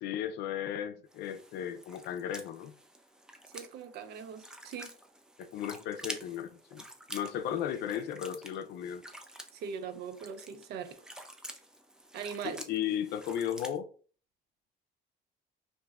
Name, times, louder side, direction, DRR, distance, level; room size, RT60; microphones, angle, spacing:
voice 1, 0.0-2.7 5.4-9.0 12.4-13.9, left 10 dB, 75° left, 0.4 m, -35 dB
sound 1, 1.1-13.8, right 1 dB, 5° right, 0.4 m, -49 dB
voice 2, 3.5-4.9 9.5-11.0 12.1-12.6, right 6 dB, 75° right, 0.5 m, -40 dB
2.6 x 2.1 x 3.5 m
cardioid pair, 110°, 17 cm